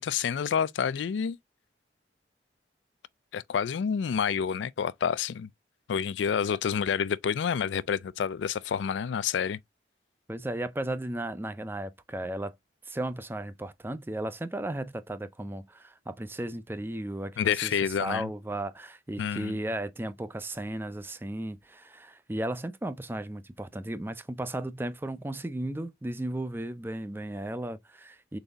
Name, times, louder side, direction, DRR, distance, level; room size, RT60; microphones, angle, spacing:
voice 1, 0.0-1.4 3.3-5.5 5.9-9.6 17.4-18.3 19.2-19.6, left 7 dB, 85° left, 0.4 m, -28 dB
voice 2, 10.3-12.6 12.9-17.7 18.0-28.4, right 1 dB, 10° right, 0.4 m, -35 dB
4.0 x 3.9 x 3.4 m
head